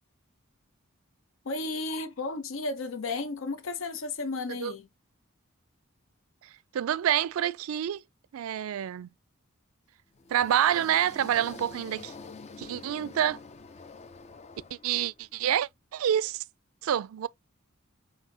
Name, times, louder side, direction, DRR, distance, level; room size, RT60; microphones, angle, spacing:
voice 1, 1.4-4.9, left 3 dB, 70° left, 0.7 m, -33 dB
voice 2, 6.7-8.0 8.3-9.1 10.3-12.1 12.6-13.4 14.8-16.4 16.8-17.3, right 10 dB, 85° right, 0.3 m, -27 dB
sound 1, 10.1-15.3, left 4 dB, 30° left, 0.4 m, -47 dB
5.5 x 2.8 x 2.7 m
head